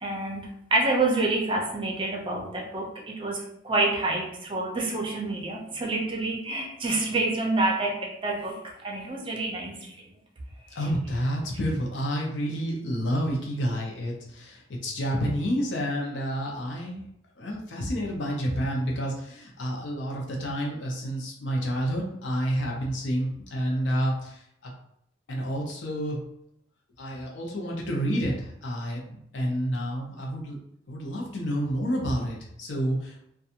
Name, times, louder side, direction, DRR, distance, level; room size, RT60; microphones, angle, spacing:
voice 1, 0.0-10.1, right 2 dB, 30° right, 0 dB, 0.6 m, -28 dB
voice 2, 10.8-17.0 17.4-24.7 25.3-26.2 27.0-30.6 30.9-33.3, equal, 75° left, -1 dB, 0.6 m, -29 dB
2.5 x 2.3 x 2.7 m, 0.73 s
head